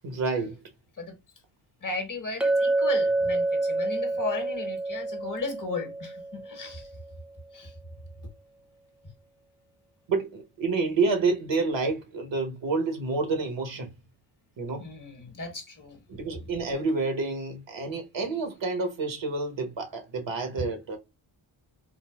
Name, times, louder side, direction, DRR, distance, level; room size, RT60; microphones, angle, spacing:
voice 1, 0.0-0.6 10.1-13.9 14.6-14.9 16.1-21.0, right 3 dB, 65° right, 1.2 m, -29 dB
voice 2, 1.8-6.9 7.5-7.7 14.8-16.0 20.6-20.7, left 4 dB, 40° left, 1.2 m, -35 dB
Chink clink, 2.4-6.9, right 2 dB, ahead, 0.5 m, -27 dB
3.9 x 2.2 x 2.3 m
cardioid pair, 90°, 49 cm